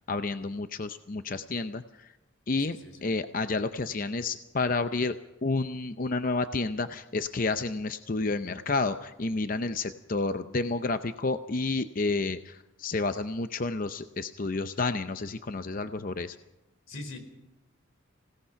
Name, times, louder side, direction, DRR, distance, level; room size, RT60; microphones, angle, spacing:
voice 1, 0.1-2.1 2.5-2.8 3.0-5.1 5.4-16.4, left 3 dB, 45° left, 10 dB, 0.6 m, -30 dB
voice 2, 2.6-3.2 16.9-17.2, left 2 dB, 90° left, 7 dB, 4.5 m, -43 dB
26.5 x 17.5 x 5.7 m, 0.99 s
head